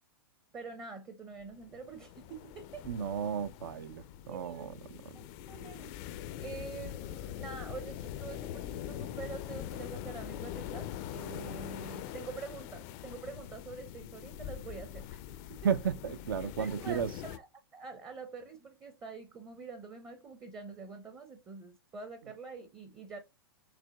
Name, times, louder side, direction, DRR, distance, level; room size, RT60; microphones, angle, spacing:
voice 1, 0.5-2.8 4.3-4.6 5.5-6.0 6.4-15.2 16.6-17.5 17.7-23.2, right 4 dB, 20° right, 0.6 m, -46 dB
sound 1, 1.4-17.4, left 11 dB, 40° left, 0.4 m, -43 dB
voice 2, 2.9-4.7 15.6-17.1, right 7 dB, 65° right, 0.4 m, -33 dB
4.9 x 3.1 x 2.2 m
figure-of-eight pair, 100°, 13 cm